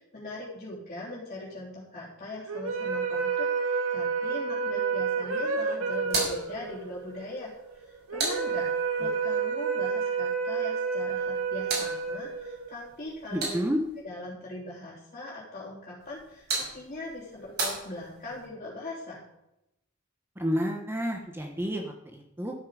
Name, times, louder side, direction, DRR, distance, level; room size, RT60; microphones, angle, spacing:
voice 1, 0.0-8.7 9.0-13.6 14.0-19.2, left 2 dB, 35° left, -7 dB, 4.0 m, -41 dB
sound 1, 2.5-12.9, right 5 dB, 85° right, 2.1 m, -30 dB
sound 2, 6.0-9.1 11.1-14.0 16.0-18.5, right 3 dB, 50° right, 5.8 m, -36 dB
voice 2, 13.3-13.8 20.4-22.5, equal, 10° right, 2 dB, 1.2 m, -30 dB
13.0 x 10.5 x 5.1 m, 0.86 s
head